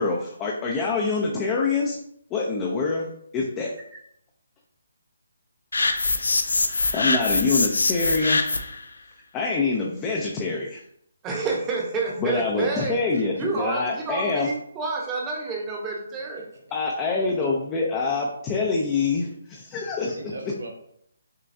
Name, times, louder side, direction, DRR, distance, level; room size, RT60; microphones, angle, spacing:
voice 1, 0.0-2.0 2.3-3.1 3.3-3.7 6.9-8.5 9.3-10.8 12.2-14.5 16.7-20.2, left 4 dB, 20° left, -2 dB, 0.5 m, -25 dB
sound 1, 5.7-8.8, left 3 dB, 85° left, 0.5 m, -23 dB
voice 2, 11.2-12.9 13.4-16.5, right 3 dB, 15° right, -2 dB, 0.9 m, -29 dB
voice 3, 13.1-13.6 17.1-17.6 20.1-20.7, right 2 dB, 75° right, -1 dB, 1.2 m, -38 dB
6.4 x 2.2 x 2.7 m, 0.72 s
hypercardioid pair, 155°, 0 cm